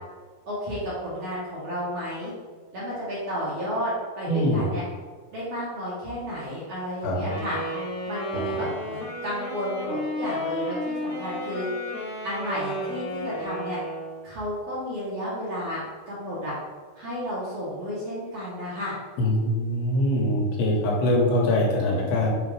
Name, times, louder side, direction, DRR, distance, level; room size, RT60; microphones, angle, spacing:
voice 1, 0.5-2.3 2.7-4.8 5.3-7.6 8.1-11.7 12.2-13.8 14.2-16.5 17.0-19.0, equal, 60° right, -9 dB, 1.9 m, -32 dB
voice 2, 4.3-4.7 7.0-7.3 8.3-8.4 19.2-22.3, left 1 dB, 90° left, -2 dB, 3.1 m, -23 dB
Wind instrument woodwind instrument, 7.3-14.2, left 1 dB, 60° left, 1.9 m, -32 dB
7.0 x 2.8 x 4.8 m, 1.5 s
omnidirectional pair, 4.4 m